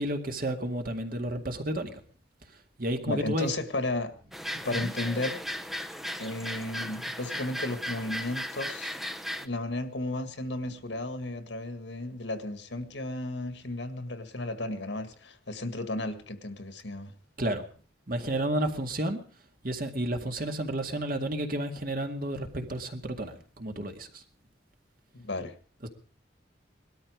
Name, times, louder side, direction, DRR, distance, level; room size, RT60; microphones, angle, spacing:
voice 1, 0.0-1.9 2.8-3.5 4.7-4.9 17.4-17.6 18.1-19.2 19.6-24.2 25.8-25.9, right 1 dB, 50° right, 5 dB, 2.1 m, -31 dB
voice 2, 3.1-4.1 4.5-5.4 6.2-8.9 9.4-17.1 25.1-25.5, left 2 dB, 70° left, 9 dB, 1.8 m, -34 dB
sound 1, 4.3-9.5, equal, ahead, 0.8 m, -36 dB
19.0 x 13.0 x 5.0 m, 0.42 s
head